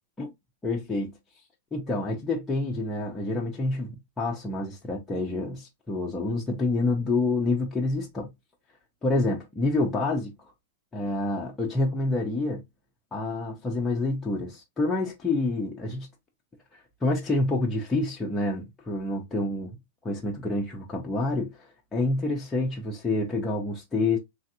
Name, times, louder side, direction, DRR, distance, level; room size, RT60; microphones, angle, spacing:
voice 1, 0.6-1.2 1.7-8.3 9.0-10.3 10.9-12.6 13.1-16.1 17.0-19.8 20.0-24.2, left 2 dB, 5° left, 0.4 m, -28 dB
3.2 x 2.4 x 2.7 m
supercardioid pair, 180°, 0 cm